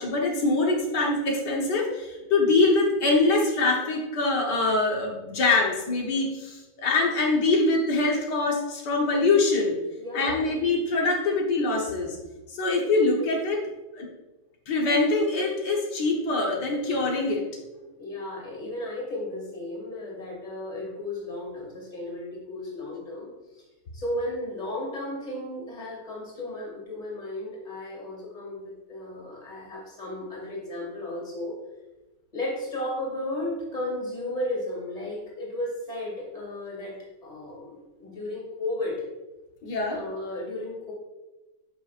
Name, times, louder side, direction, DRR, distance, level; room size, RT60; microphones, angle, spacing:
voice 1, 0.0-9.8 10.1-12.2 12.5-13.6 14.0-14.1 14.7-17.4 39.6-40.0, left 3 dB, 85° left, 0 dB, 1.8 m, -24 dB
voice 2, 10.0-10.5 18.0-23.7 23.9-31.5 32.3-37.0 37.2-39.0 39.9-40.9, left 1 dB, 25° left, -3 dB, 2.4 m, -34 dB
10.5 x 6.0 x 2.5 m, 1.1 s
omnidirectional pair, 1.8 m